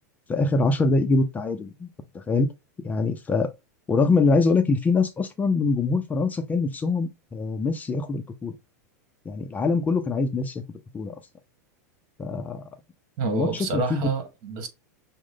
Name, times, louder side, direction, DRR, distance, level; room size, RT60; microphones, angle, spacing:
voice 1, 0.3-1.9 2.1-2.5 2.8-3.5 3.9-8.5 9.3-10.6 10.9-11.2 12.2-12.7 13.2-14.1, left 3 dB, 15° left, 0.5 m, -24 dB
voice 2, 13.2-14.7, right 3 dB, 50° right, 1.6 m, -28 dB
6.1 x 2.1 x 3.7 m
hypercardioid pair, 125°, 9 cm